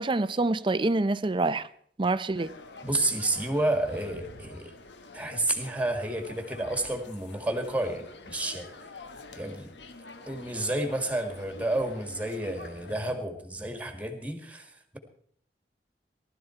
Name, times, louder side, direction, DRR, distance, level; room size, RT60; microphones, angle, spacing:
voice 1, 0.0-1.6 2.0-2.5, right 2 dB, 30° right, 0.5 m, -26 dB
sound 1, 2.4-13.0, left 3 dB, 85° left, 1.3 m, -47 dB
voice 2, 2.8-4.7 5.1-8.7 9.3-9.7 10.3-15.0, right 1 dB, 10° right, 1.8 m, -30 dB
18.5 x 12.5 x 4.5 m
head